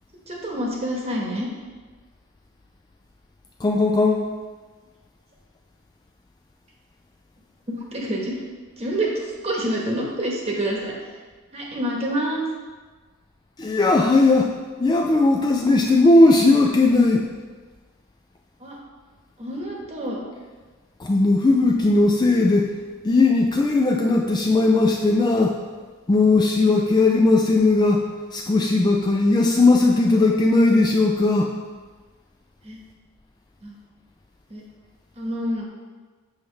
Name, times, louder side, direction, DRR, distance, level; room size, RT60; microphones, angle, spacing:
voice 1, 0.3-1.5 7.7-8.3 8.8-9.1 9.4-10.9 11.5-12.4 18.6-18.8 19.4-20.2 32.6-32.8 33.6-33.7 34.5-34.6 35.2-35.7, right 1 dB, 30° right, -2 dB, 1.1 m, -27 dB
voice 2, 3.6-4.2 13.6-14.5 14.8-17.3 21.0-22.7 23.0-25.5 26.1-28.1 28.3-31.5, left 2 dB, 20° left, 1 dB, 0.3 m, -18 dB
7.2 x 5.7 x 3.2 m, 1.4 s
head